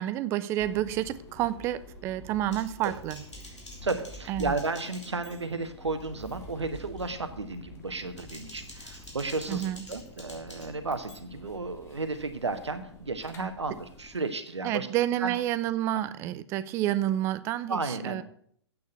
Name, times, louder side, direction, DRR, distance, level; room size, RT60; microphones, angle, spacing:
voice 1, 0.0-3.2 4.3-4.5 9.5-9.8 13.4-13.5 14.6-18.2, right 13 dB, 20° right, 15 dB, 0.4 m, -29 dB
sound 1, 0.6-14.5, left 1 dB, 20° left, 1.4 m, -50 dB
Typing, 2.5-5.7 6.0-6.4 6.7-7.1 7.9-11.1, left 1 dB, 80° left, 3.2 m, -49 dB
voice 2, 3.8-14.9 15.2-15.3 17.7-18.2, right 3 dB, 75° right, 9 dB, 1.4 m, -33 dB
sound 2, 6.1-14.2, left 1 dB, ahead, 1.3 m, -53 dB
8.5 x 6.7 x 8.1 m, 0.64 s
figure-of-eight pair, 120°, 15 cm